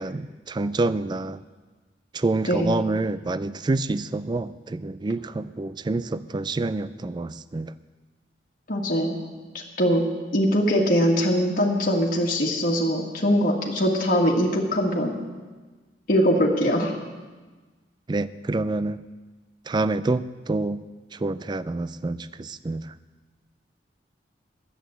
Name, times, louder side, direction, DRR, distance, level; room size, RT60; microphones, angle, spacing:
voice 1, 0.0-1.4 2.1-7.7 18.1-19.0 19.7-20.8 21.1-22.9, right 2 dB, 25° right, 15 dB, 0.4 m, -27 dB
voice 2, 8.7-9.2 9.8-10.0 10.3-15.2 16.1-16.9, equal, 50° left, -2 dB, 1.8 m, -22 dB
11.5 x 8.7 x 7.9 m, 1.3 s
head